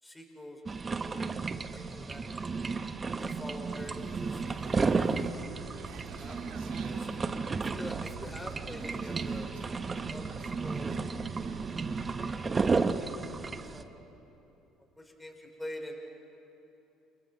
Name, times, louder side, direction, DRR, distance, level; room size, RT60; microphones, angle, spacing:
voice 1, 0.0-1.5 1.7-2.7 3.2-4.6 6.2-7.1 7.6-9.5 10.1-11.5 12.2-12.5 13.3-13.4 13.7-13.9 15.0-16.1, left 1 dB, 10° left, 2 dB, 4.8 m, -46 dB
sound 1, 0.7-13.8, right 4 dB, 30° right, 1.2 m, -33 dB
sound 2, 3.8-12.1, right 6 dB, 65° right, 2.3 m, -46 dB
29.0 x 28.5 x 4.2 m, 3.0 s
hypercardioid pair, 55°, 0 cm